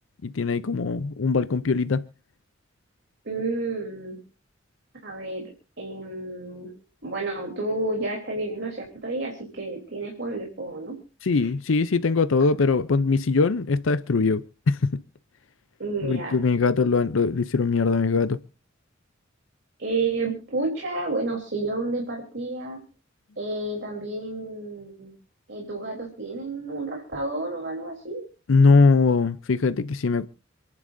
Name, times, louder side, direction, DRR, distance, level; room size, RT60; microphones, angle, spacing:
voice 1, 0.2-2.1 11.2-15.0 16.0-18.4 28.5-30.2, left 4 dB, 75° left, 0.6 m, -21 dB
voice 2, 3.2-4.2 5.0-5.5 5.8-6.7 7.0-11.0 11.4-11.5 15.8-16.4 19.8-22.8 23.4-25.1 25.5-28.2, right 2 dB, 60° right, 3.5 m, -30 dB
28.0 x 10.5 x 2.7 m
head